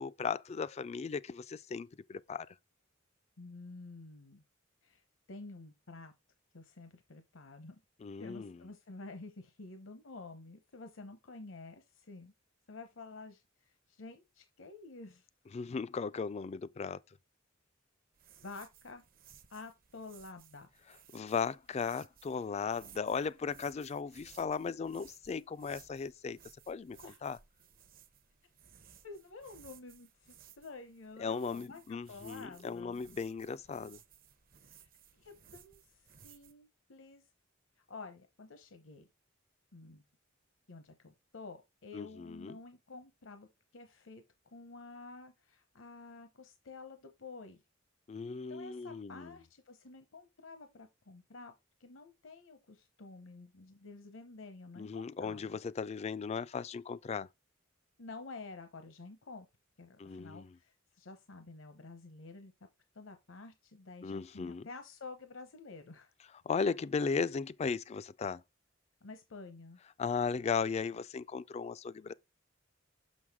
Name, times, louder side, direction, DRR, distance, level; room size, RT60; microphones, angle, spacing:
voice 1, 0.0-2.5 8.0-8.6 15.5-17.0 21.1-26.4 26.7-27.4 31.2-34.0 41.9-42.6 48.1-49.3 54.8-57.3 60.0-60.6 64.0-64.7 66.5-68.4 70.0-72.1, left 5 dB, 35° left, 0.3 m, -36 dB
voice 2, 3.4-4.4 4.8-5.0 5.3-6.1 6.5-7.8 8.2-12.3 12.7-15.3 18.4-19.0 19.5-20.7 27.0-27.2 29.0-33.0 34.6-35.8 36.2-37.2 37.9-39.1 39.7-40.0 40.7-43.5 43.7-44.2 44.5-47.6 48.5-51.5 51.8-55.6 58.0-59.5 59.8-62.5 62.9-66.1 69.0-69.8, left 3 dB, 70° left, 0.8 m, -50 dB
sound 1, 18.1-36.5, right 8 dB, 45° right, 0.7 m, -60 dB
6.4 x 6.3 x 3.5 m
head